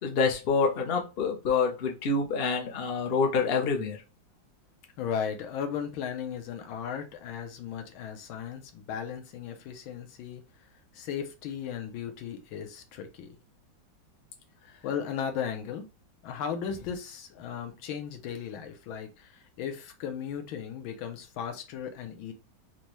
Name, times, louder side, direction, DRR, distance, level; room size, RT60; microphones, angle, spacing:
voice 1, 0.0-4.0, left 4 dB, 70° left, 0.5 m, -27 dB
voice 2, 5.0-10.4 10.9-13.3 14.8-15.9 16.2-22.3, left 8 dB, 90° left, 1.5 m, -36 dB
4.2 x 2.2 x 3.1 m
omnidirectional pair, 2.2 m